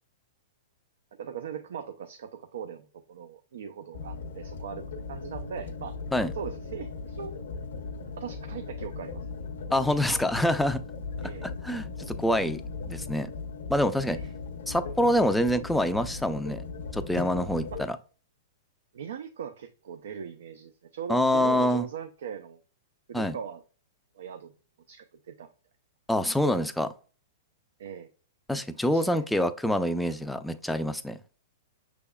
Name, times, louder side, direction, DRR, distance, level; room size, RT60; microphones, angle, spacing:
voice 1, 1.2-6.0 6.3-7.3 8.2-9.3 11.2-11.5 14.1-14.3 17.7-17.8 18.9-22.6 23.1-23.6 24.2-24.5 24.9-25.5 27.8-28.1 28.9-29.2, right 7 dB, 75° right, 0.4 m, -39 dB
sound 1, 3.9-17.9, left 4 dB, 75° left, 0.7 m, -38 dB
voice 2, 9.7-10.8 11.4-12.6 12.9-13.3 13.7-14.2 14.7-16.6 16.9-18.0 21.1-21.9 23.1-23.4 26.1-26.9 28.5-31.2, left 1 dB, 5° left, 0.3 m, -26 dB
6.0 x 3.4 x 2.2 m
hypercardioid pair, 135°, 0 cm